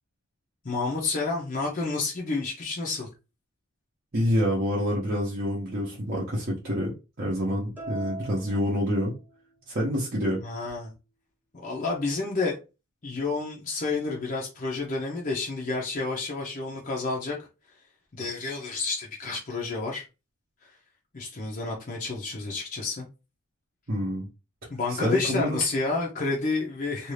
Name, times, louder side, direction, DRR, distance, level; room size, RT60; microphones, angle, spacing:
voice 1, 0.6-3.1 10.4-10.9 11.5-12.6 13.0-17.4 18.1-20.0 21.1-23.1 24.7-27.1, left 3 dB, 35° left, -3 dB, 0.6 m, -30 dB
voice 2, 4.1-9.1 9.7-10.4 23.9-24.3 24.9-25.6, equal, 45° right, -5 dB, 0.7 m, -27 dB
sound 1, 7.8-9.6, right 3 dB, 10° right, 0.8 m, -41 dB
2.6 x 2.3 x 3.2 m, 0.30 s
head